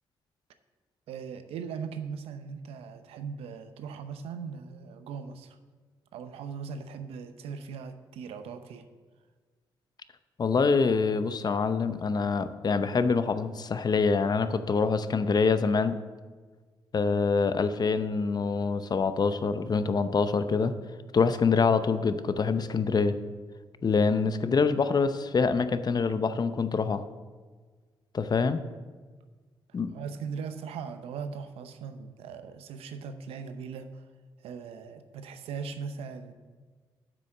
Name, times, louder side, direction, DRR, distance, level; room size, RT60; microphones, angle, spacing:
voice 1, 1.1-5.6 6.1-8.8 29.9-34.0 34.4-36.3, right 6 dB, 85° right, 9 dB, 0.7 m, -39 dB
voice 2, 10.4-16.0 16.9-20.7 21.1-23.2 23.8-27.0 28.1-28.6 29.7-29.9, left 5 dB, 45° left, 11 dB, 0.7 m, -25 dB
7.7 x 6.2 x 7.5 m, 1.4 s
supercardioid pair, 60°, 10 cm